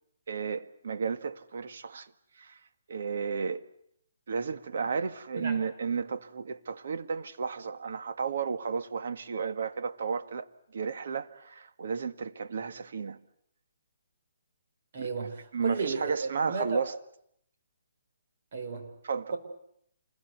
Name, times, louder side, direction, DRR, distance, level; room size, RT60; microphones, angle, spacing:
voice 1, 0.3-2.1 2.4-2.6 2.9-3.6 4.3-10.5 10.7-13.2 15.0-16.9 19.0-19.3, right 5 dB, 60° right, 1.7 m, -33 dB
voice 2, 5.4-5.7 14.9-16.8 18.5-18.9 19.3-19.4, right 4 dB, 40° right, 5.7 m, -34 dB
28.0 x 21.5 x 8.2 m
hypercardioid pair, 170°, 0 cm